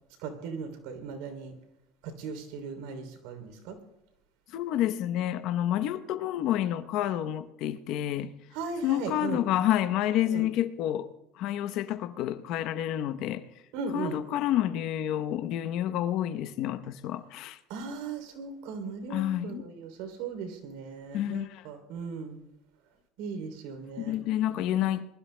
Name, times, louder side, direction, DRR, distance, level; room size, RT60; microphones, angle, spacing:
voice 1, 0.2-1.5 2.0-3.8 8.5-9.4 10.3-10.4 13.7-14.2 17.7-22.4 23.2-24.2 24.5-24.7, right 5 dB, 80° right, 3.0 m, -37 dB
voice 2, 4.5-8.3 8.8-11.1 11.4-13.4 13.9-17.6 19.1-19.6 21.1-21.6 24.0-25.2, left 12 dB, 65° left, 0.8 m, -29 dB
27.0 x 21.0 x 2.2 m
supercardioid pair, 110°, 0 cm